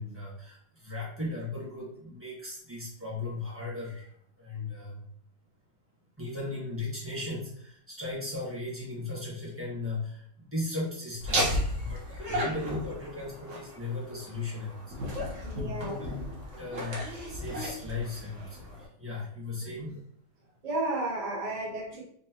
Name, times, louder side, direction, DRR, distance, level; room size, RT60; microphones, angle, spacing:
voice 1, 0.0-5.0 6.2-16.1 16.6-20.0, left 2 dB, 10° right, -6 dB, 1.2 m, -37 dB
Laughter, 11.2-18.9, equal, 45° right, 1.3 m, -34 dB
voice 2, 15.4-16.0 19.6-19.7 20.6-22.0, right 2 dB, 70° right, -2 dB, 0.3 m, -33 dB
4.2 x 3.0 x 3.0 m, 0.67 s
omnidirectional pair, 2.2 m